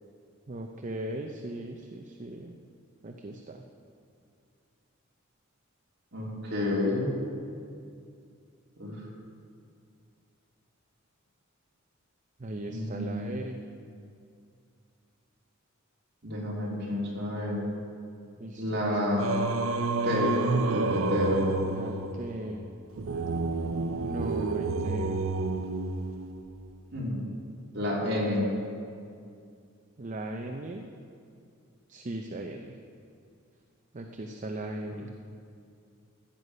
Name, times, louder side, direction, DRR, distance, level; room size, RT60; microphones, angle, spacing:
voice 1, 0.5-2.6 3.0-3.6 12.4-13.6 18.4-18.6 21.7-22.7 24.0-25.2 30.0-30.9 31.9-32.7 33.9-35.1, right 1 dB, 35° right, 3 dB, 0.6 m, -37 dB
voice 2, 6.1-7.1 8.8-8.9 12.7-13.3 16.2-17.7 18.6-19.3 20.0-20.4 20.6-21.4 26.9-27.2 27.7-28.5 34.9-35.0, left 1 dB, 55° right, -4 dB, 3.0 m, -29 dB
Singing, 19.2-26.5, right 3 dB, 80° right, 0.6 m, -30 dB
14.5 x 8.1 x 5.6 m, 2.4 s
head